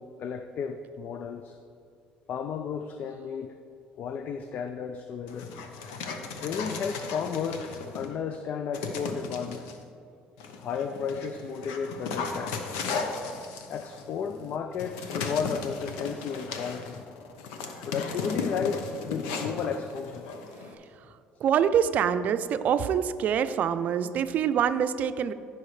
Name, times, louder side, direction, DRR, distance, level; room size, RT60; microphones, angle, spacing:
voice 1, 0.0-1.6 2.3-3.5 4.0-5.5 6.4-7.7 7.9-9.7 10.6-12.9 13.7-17.0 17.9-20.3, left 6 dB, 50° left, 8 dB, 0.4 m, -33 dB
Dog, 5.3-8.2 8.7-9.8 10.4-20.7, left 4 dB, 90° left, 0.9 m, -36 dB
voice 2, 21.4-25.3, right 8 dB, 55° right, 11 dB, 0.5 m, -25 dB
14.0 x 5.7 x 3.2 m, 2.4 s
cardioid pair, 100°, 3 cm